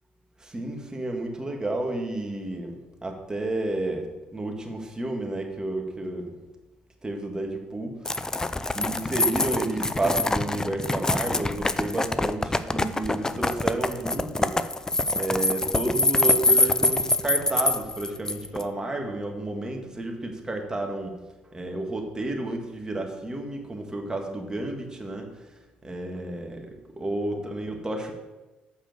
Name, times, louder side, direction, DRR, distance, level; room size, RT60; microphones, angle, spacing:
voice 1, 0.4-4.1 4.3-6.3 7.0-8.2 8.7-14.6 15.2-21.2 21.5-25.3 25.8-28.1, right 2 dB, 20° right, 2 dB, 1.9 m, -31 dB
sound 1, 8.1-18.6, left 2 dB, 15° left, 0.5 m, -25 dB
7.0 x 5.5 x 6.8 m, 1.1 s
supercardioid pair, 65°, 4 cm